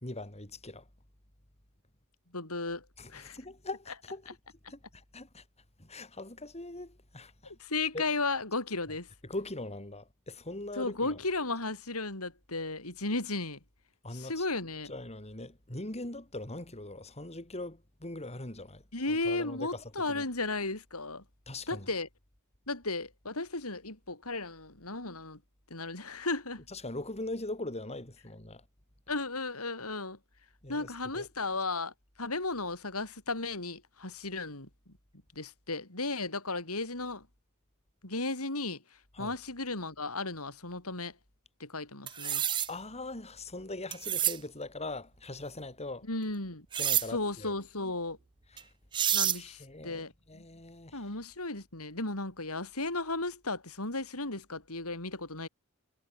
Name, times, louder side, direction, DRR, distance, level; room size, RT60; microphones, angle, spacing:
voice 1, 0.0-0.9 3.0-4.4 4.7-5.4 5.8-7.5 7.9-8.0 9.2-11.2 14.0-14.4 14.8-18.8 19.2-20.2 21.5-21.9 26.7-28.6 30.6-31.3 39.1-39.4 42.7-46.1 46.8-47.5 48.5-48.7 49.4-51.1, left 2 dB, 30° left, 4.6 m, -41 dB
voice 2, 2.3-2.8 3.1-3.4 7.4-9.1 10.8-13.6 14.1-14.9 18.9-21.2 21.7-22.1 22.7-25.4 25.7-26.6 29.1-30.2 30.7-31.9 32.2-34.7 35.3-37.3 38.0-38.8 39.2-41.1 41.6-42.4 46.1-46.7 47.1-48.2 49.1-50.4 50.9-55.5, left 3 dB, 90° left, 6.7 m, -35 dB
sound 1, 42.1-42.7 43.9-44.4 46.7-47.1 48.6-48.7 48.9-49.4, right 10 dB, 20° right, 0.4 m, -28 dB
head